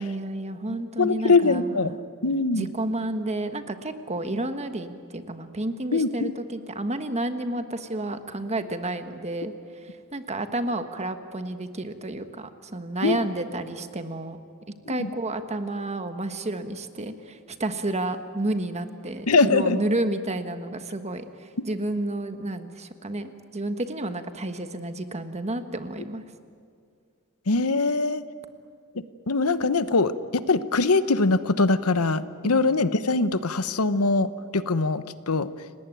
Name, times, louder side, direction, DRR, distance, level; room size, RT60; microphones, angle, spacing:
voice 1, 0.0-2.0 2.5-9.5 9.8-14.4 14.9-26.2 32.4-32.8, right 1 dB, 30° right, 8 dB, 1.4 m, -31 dB
voice 2, 1.0-2.0 2.2-2.7 5.9-6.3 13.0-13.2 14.9-15.1 19.3-19.8 27.5-28.2 29.3-30.1 30.5-35.5, left 3 dB, 90° left, 13 dB, 1.0 m, -22 dB
29.5 x 18.5 x 9.3 m, 2.3 s
head